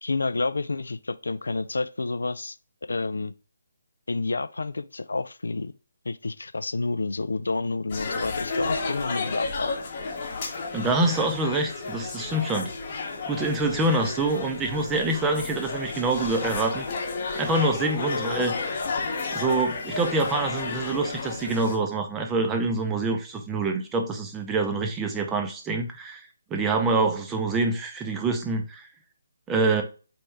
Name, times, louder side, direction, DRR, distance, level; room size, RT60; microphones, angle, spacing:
voice 1, 0.0-2.6 2.9-3.3 4.1-5.7 6.1-9.7 14.0-14.2 18.1-18.2, left 3 dB, 65° left, 0.3 m, -29 dB
sound 1, 7.9-21.8, left 4 dB, 35° left, 0.9 m, -32 dB
voice 2, 10.7-12.7 13.3-18.5 19.3-26.2 26.5-28.8 29.5-29.8, right 3 dB, 10° right, 0.5 m, -26 dB
4.2 x 3.1 x 3.3 m
figure-of-eight pair, 145°, 0 cm